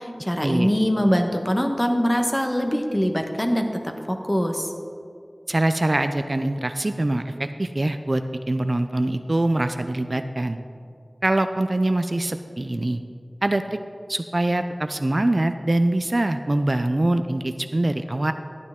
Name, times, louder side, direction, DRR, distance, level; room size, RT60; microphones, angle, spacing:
voice 1, 0.0-4.7, equal, 15° left, 4 dB, 1.0 m, -23 dB
voice 2, 5.5-10.6 11.2-13.0 13.4-13.8 14.1-18.3, right 1 dB, 50° right, 8 dB, 0.4 m, -23 dB
11.5 x 9.6 x 3.6 m, 2.3 s
wide cardioid pair, 50°, 0 cm